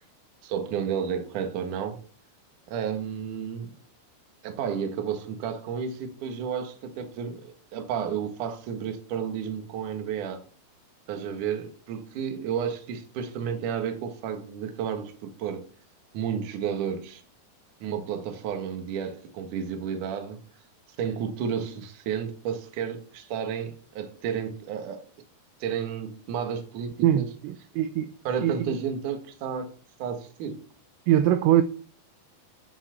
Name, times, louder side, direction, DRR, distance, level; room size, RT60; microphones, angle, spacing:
voice 1, 0.4-2.0 2.7-3.7 4.4-10.4 11.1-15.6 16.1-17.2 17.8-20.4 21.0-25.0 25.6-27.2 28.2-29.7 30.0-30.6, right 7 dB, 60° right, 2.2 m, -32 dB
voice 2, 27.0-28.1 28.4-28.7 31.1-31.6, right 12 dB, 85° right, 2.6 m, -22 dB
10.0 x 7.3 x 6.8 m
omnidirectional pair, 5.6 m